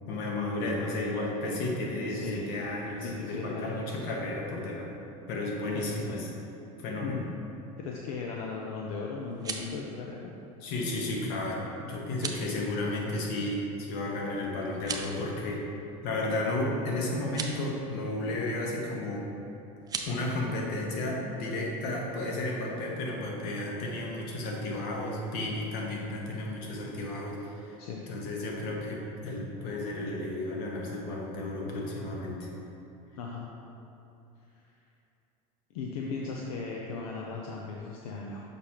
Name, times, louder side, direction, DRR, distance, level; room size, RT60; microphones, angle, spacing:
voice 1, 0.1-4.9 5.3-6.3 6.8-7.2 10.6-15.7 16.0-19.3 20.0-27.8 28.1-32.5, left 2 dB, 60° left, -1 dB, 1.2 m, -33 dB
voice 2, 2.1-2.5 3.0-4.0 5.7-5.9 7.0-7.2 7.8-10.3 12.2-12.4 27.8-28.0 33.1-33.5 35.7-38.4, left 4 dB, 80° left, -1 dB, 0.6 m, -37 dB
sound 1, 9.2-9.8 12.1-12.5 14.7-15.2 17.2-17.6 19.8-20.1, right 5 dB, 20° right, 0.5 m, -36 dB
6.6 x 5.1 x 2.9 m, 2.8 s
supercardioid pair, 115°, 18 cm